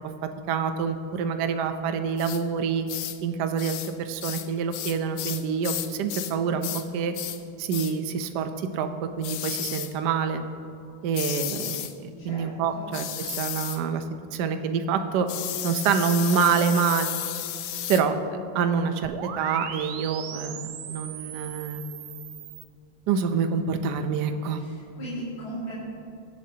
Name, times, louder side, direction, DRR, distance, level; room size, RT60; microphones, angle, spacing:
voice 1, 0.5-2.9 3.2-7.1 7.6-10.4 11.0-14.0 14.3-15.3 15.6-17.1 17.9-18.2 18.5-21.8 23.1-24.6, right 6 dB, 70° right, 8 dB, 1.0 m, -26 dB
sound 1, 2.2-2.4 2.9-3.2 3.6-3.9 4.2-6.4 6.6-6.9 7.1-7.4 7.7-8.0 9.2-9.9 11.1-11.9 12.9-13.8 15.3-18.1, left 12 dB, 85° left, 1.5 m, -33 dB
voice 2, 12.2-13.0 24.5-25.7, right 1 dB, 65° left, -9 dB, 3.0 m, -38 dB
sound 2, 19.0-22.6, right 8 dB, 90° right, 1.6 m, -38 dB
22.0 x 7.5 x 2.8 m, 2.6 s
omnidirectional pair, 2.3 m